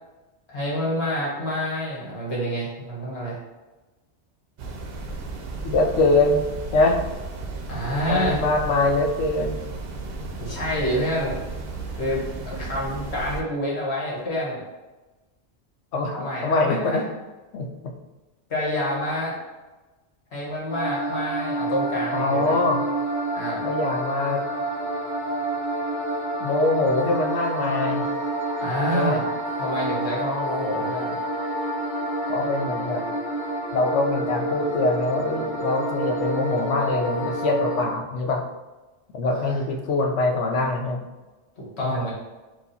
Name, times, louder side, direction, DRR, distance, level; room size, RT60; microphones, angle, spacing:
voice 1, 0.5-3.4 7.7-8.4 10.4-11.4 12.0-14.6 16.1-17.0 18.5-19.4 20.3-22.6 23.3-23.7 28.6-29.2 29.6-31.1 39.3-39.6 41.6-42.1, equal, 65° left, -4 dB, 1.6 m, -28 dB
sound 1, 4.6-13.4, right 3 dB, 60° right, 0.8 m, -34 dB
voice 2, 5.6-6.4 6.7-7.0 8.1-9.6 15.9-16.2 16.4-17.0 17.5-17.9 22.1-22.9 23.6-24.4 26.4-28.1 28.9-29.2 32.3-33.1 33.7-38.4 39.1-41.1 41.8-42.1, left 2 dB, 85° left, 3 dB, 1.0 m, -23 dB
sound 2, 20.7-37.9, right 1 dB, 50° left, 0.7 m, -28 dB
4.7 x 2.5 x 4.0 m, 1.1 s
omnidirectional pair, 1.2 m